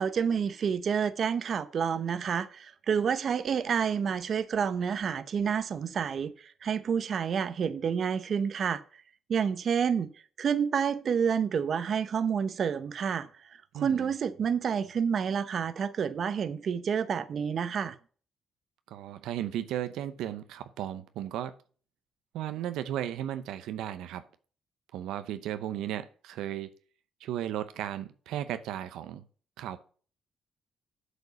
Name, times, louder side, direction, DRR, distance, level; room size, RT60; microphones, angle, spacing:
voice 1, 0.0-8.8 9.3-10.1 10.4-13.3 13.7-18.0, right 7 dB, 55° right, 0.7 m, -29 dB
voice 2, 13.7-14.1 18.9-21.6 22.3-24.3 24.9-26.7 27.2-29.3 29.6-29.8, right 11 dB, 90° right, 0.8 m, -35 dB
8.0 x 5.2 x 7.0 m
cardioid pair, 90°, 0 cm